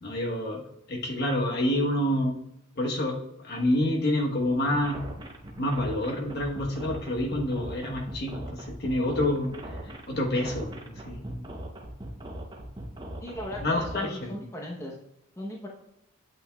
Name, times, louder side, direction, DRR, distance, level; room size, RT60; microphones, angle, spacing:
voice 1, 0.0-0.6 0.9-2.3 2.8-3.2 3.4-5.0 5.6-8.4 8.8-9.5 10.1-11.4 13.6-14.3, left 1 dB, 50° left, 1 dB, 1.1 m, -27 dB
sound 1, 4.7-14.0, right 1 dB, 20° right, 0.7 m, -40 dB
voice 2, 13.2-15.0 15.4-15.7, left 1 dB, 15° left, -1 dB, 0.8 m, -37 dB
8.7 x 8.0 x 2.3 m, 0.81 s
head